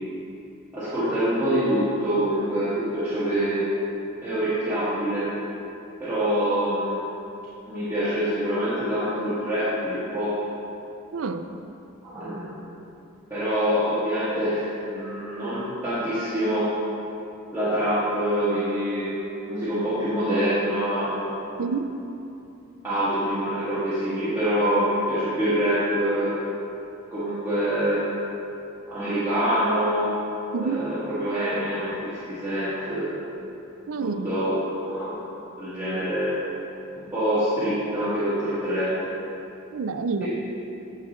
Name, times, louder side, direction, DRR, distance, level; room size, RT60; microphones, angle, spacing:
voice 1, 0.7-3.7 4.2-5.3 6.0-7.0 7.7-10.3 12.0-12.5 13.3-16.7 17.5-19.1 19.5-21.2 21.5-21.7 22.8-26.3 27.1-28.2 28.9-30.1 30.6-33.1 33.9-35.2 35.6-36.4 36.9-38.9 40.2-40.3, equal, 10° right, -15 dB, 1.7 m, -25 dB
voice 2, 11.1-11.5 21.6-22.0 30.5-30.9 33.9-34.3 39.7-40.3, right 4 dB, 85° right, 9 dB, 0.4 m, -28 dB
9.5 x 6.5 x 3.2 m, 2.8 s
head